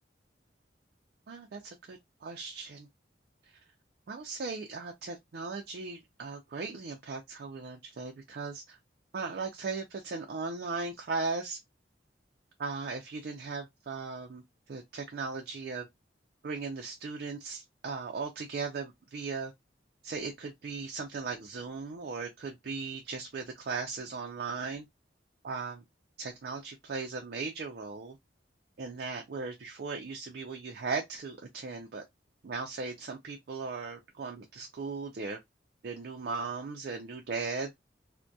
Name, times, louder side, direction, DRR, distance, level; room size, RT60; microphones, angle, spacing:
voice 1, 1.3-2.9 3.4-3.6 4.1-8.8 9.1-11.6 12.6-15.9 16.4-19.5 20.0-24.8 25.4-25.8 26.2-28.2 28.8-32.0 32.4-35.4 35.8-37.7, right 4 dB, 60° right, 0.4 m, -37 dB
2.2 x 2.1 x 2.6 m
head